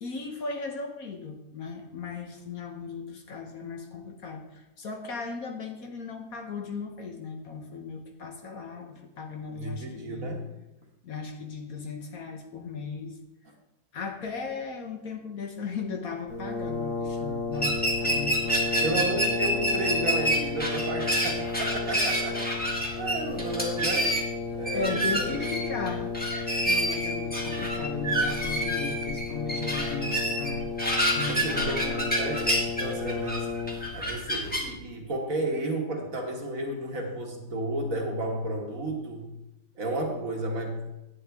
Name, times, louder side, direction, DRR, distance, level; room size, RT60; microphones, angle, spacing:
voice 1, 0.0-10.3 11.0-13.2 13.9-19.3 24.7-26.1 26.7-30.7 31.1-32.0, left 4 dB, 60° left, 3 dB, 1.3 m, -36 dB
voice 2, 9.5-10.5 18.8-22.4 22.9-24.2 24.5-25.4 31.1-33.5 33.9-39.3 39.8-40.9, right 1 dB, 50° right, 1 dB, 1.7 m, -32 dB
Brass instrument, 16.3-34.1, left 4 dB, 30° left, 1.9 m, -33 dB
sound 1, 17.5-34.7, right 1 dB, 5° left, 1.3 m, -28 dB
10.0 x 9.2 x 3.5 m, 0.91 s
omnidirectional pair, 1.9 m